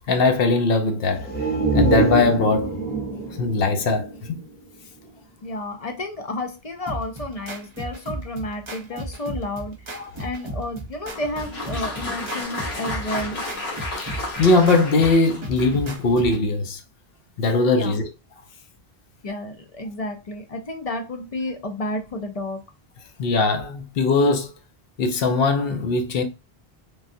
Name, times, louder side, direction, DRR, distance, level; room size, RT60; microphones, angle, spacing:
voice 1, 0.1-1.3 1.7-2.8 3.4-4.4 9.9-10.1 14.0-16.8 17.4-18.1 23.2-24.5 25.0-26.2, left 3 dB, 70° left, 0.9 m, -20 dB
sound 1, 1.1-4.8 5.2-5.3, right 2 dB, 10° left, 0.8 m, -24 dB
voice 2, 5.4-13.4 17.7-18.0 19.2-22.6, left 1 dB, 45° left, 0.6 m, -31 dB
sound 2, 6.9-16.5, right 1 dB, 35° right, 0.6 m, -35 dB
Applause, 11.1-16.0, left 2 dB, 85° left, 1.3 m, -32 dB
3.4 x 2.3 x 2.6 m
omnidirectional pair, 1.0 m